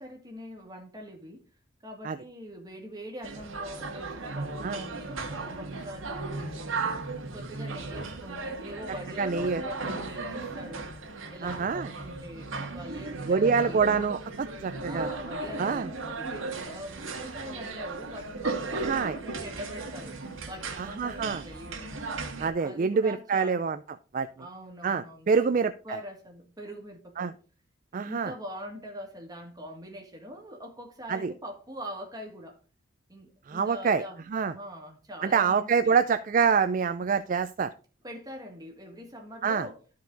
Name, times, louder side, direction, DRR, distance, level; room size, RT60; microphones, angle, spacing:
voice 1, 0.0-1.5 1.8-7.0 7.3-10.9 11.3-13.8 14.8-20.2 20.5-21.9 22.6-23.7 24.4-25.5 25.8-27.4 27.9-32.6 33.1-34.2 34.5-36.0 38.0-39.8, equal, 20° right, 1.9 m, -43 dB
sound 1, 3.2-22.5, right 3 dB, 75° right, 1.7 m, -36 dB
voice 2, 9.2-9.6 11.4-11.9 13.3-15.1 15.6-15.9 18.8-19.2 20.8-21.4 22.4-23.8 24.1-24.3 24.8-26.0 27.2-27.3 27.9-28.3 31.1-31.3 33.5-34.0 34.3-34.5 35.2-37.7 39.4-39.7, right 5 dB, 40° right, 0.3 m, -26 dB
12.5 x 4.8 x 3.9 m
head